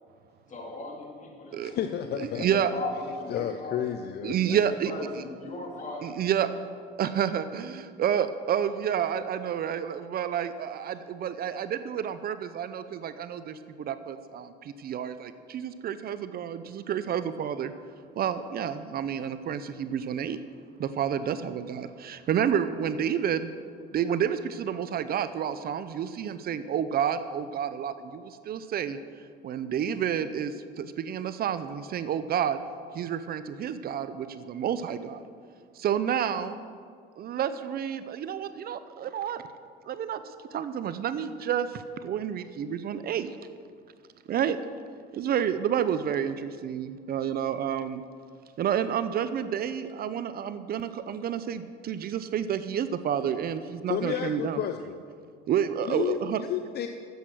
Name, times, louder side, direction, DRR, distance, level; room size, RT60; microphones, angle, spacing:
voice 1, 0.5-3.8 4.4-4.6 4.9-6.2, left 2 dB, 35° left, -1 dB, 2.9 m, -38 dB
voice 2, 1.6-2.6 3.3-4.3 53.9-55.0 55.9-56.9, left 10 dB, 55° left, 7 dB, 0.6 m, -31 dB
voice 3, 2.1-2.7 4.2-4.9 6.0-6.5 7.0-17.7 18.2-20.4 20.8-23.5 23.9-29.0 29.4-32.6 32.9-35.2 35.8-36.6 37.2-39.4 39.9-43.4 44.3-44.6 45.1-48.0 48.6-54.6 55.5-56.4, right 9 dB, 50° right, 12 dB, 0.6 m, -30 dB
10.0 x 8.0 x 6.2 m, 2.1 s
supercardioid pair, 85°, 20 cm